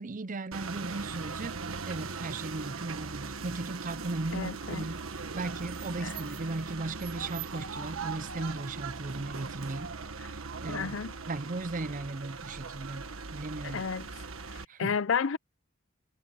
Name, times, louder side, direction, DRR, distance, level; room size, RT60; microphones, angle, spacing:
voice 1, 0.0-1.5 1.9-9.9 10.2-11.0 11.3-13.8 14.7-14.9, right 2 dB, 40° right, 0.6 m, -37 dB
sound 1, 0.5-14.7, right 4 dB, 85° right, 1.5 m, -39 dB
voice 2, 4.3-4.9 6.0-6.1 10.2-10.3 10.7-11.1 13.6-14.1 14.8-15.4, left 6 dB, 65° left, 0.6 m, -31 dB
head